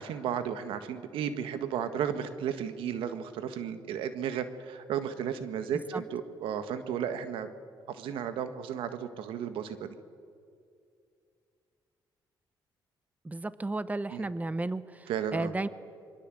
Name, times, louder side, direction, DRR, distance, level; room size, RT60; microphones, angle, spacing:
voice 1, 0.0-7.5 7.9-10.0 14.1-14.3 15.1-15.5, right 8 dB, 85° right, 9 dB, 1.7 m, -34 dB
voice 2, 13.2-15.7, right 2 dB, 15° right, 14 dB, 1.0 m, -33 dB
26.0 x 23.5 x 7.8 m, 2.4 s
cardioid pair, 75°, 9 cm